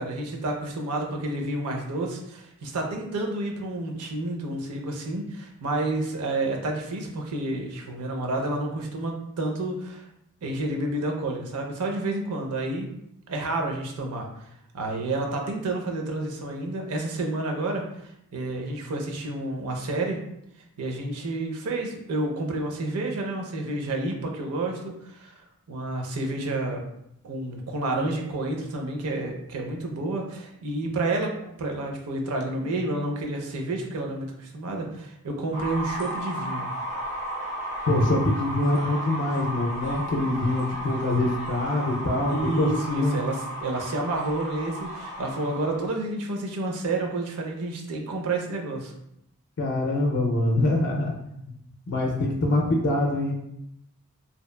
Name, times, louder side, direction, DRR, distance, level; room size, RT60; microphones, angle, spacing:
voice 1, 0.0-10.0 10.4-12.9 13.3-14.3 14.7-20.2 20.8-25.4 25.7-26.8 27.2-36.7 42.3-48.9, right 2 dB, 85° right, 2 dB, 0.5 m, -30 dB
sound 1, 35.5-45.9, equal, 30° right, 0.6 m, -34 dB
voice 2, 37.9-43.2 49.6-51.4 51.9-53.3, left 1 dB, 55° left, 0 dB, 0.4 m, -24 dB
2.8 x 2.2 x 2.2 m, 0.78 s
head